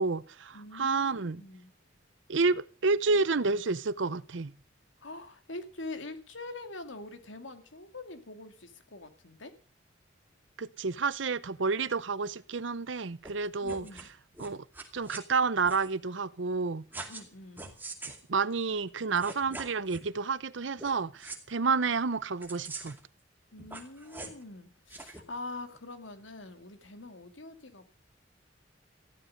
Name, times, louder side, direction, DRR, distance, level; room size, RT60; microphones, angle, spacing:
voice 1, 0.0-1.4 2.3-4.5 10.6-14.0 14.4-14.6 14.9-16.8 18.3-23.0, right 4 dB, 80° right, 0.7 m, -30 dB
voice 2, 0.5-1.7 5.0-9.5 13.6-14.1 17.1-17.7 23.5-27.8, left 2 dB, 90° left, 2.4 m, -44 dB
sound 1, 13.2-13.3 13.6-14.1 14.3-15.2 15.6-15.9 16.9-17.3 17.6-18.2 18.9-19.0 19.1-20.1 20.8-20.9 21.2-21.4 22.4-23.0 23.6-24.4 24.9-25.2, right 3 dB, 10° right, 2.4 m, -43 dB
15.0 x 12.0 x 6.6 m
head